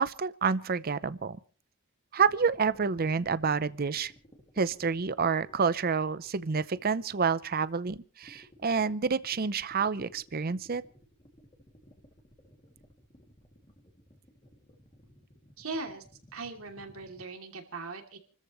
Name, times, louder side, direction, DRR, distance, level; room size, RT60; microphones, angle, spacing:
voice 1, 0.0-1.4 2.1-4.1 4.6-10.8, right 5 dB, 45° right, 16 dB, 0.6 m, -28 dB
sound 1, 2.2-7.8 8.2-17.2, equal, 25° left, 2.5 m, -57 dB
voice 2, 15.6-16.0 16.3-18.2, right 3 dB, 85° right, 3 dB, 2.8 m, -39 dB
28.5 x 14.0 x 3.1 m, 0.39 s
head